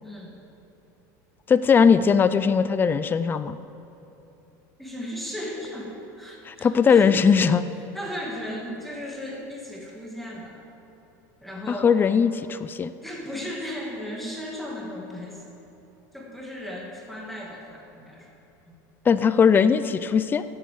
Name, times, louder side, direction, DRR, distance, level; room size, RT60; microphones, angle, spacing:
voice 1, 0.0-0.3 4.8-7.2 7.9-10.6 11.4-11.9 13.0-15.4 16.1-18.3, equal, ahead, -3 dB, 2.2 m, -36 dB
voice 2, 1.5-3.6 6.4-7.7 11.7-12.9 19.1-20.4, left 6 dB, 20° left, 13 dB, 0.4 m, -19 dB
11.0 x 8.4 x 7.6 m, 3.0 s
supercardioid pair, 120°, 10 cm